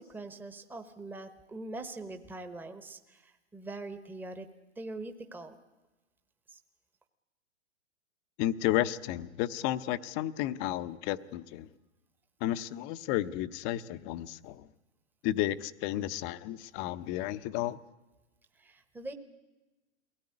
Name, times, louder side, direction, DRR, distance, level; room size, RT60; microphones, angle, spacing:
voice 1, 0.0-4.5 4.8-5.5 6.5-6.6 18.6-19.1, right 2 dB, 5° right, 8 dB, 1.0 m, -43 dB
voice 2, 8.4-11.7 12.4-14.7 15.2-17.8, left 14 dB, 30° left, 14 dB, 0.7 m, -32 dB
22.0 x 17.5 x 9.7 m, 1.1 s
hypercardioid pair, 135°, 35 cm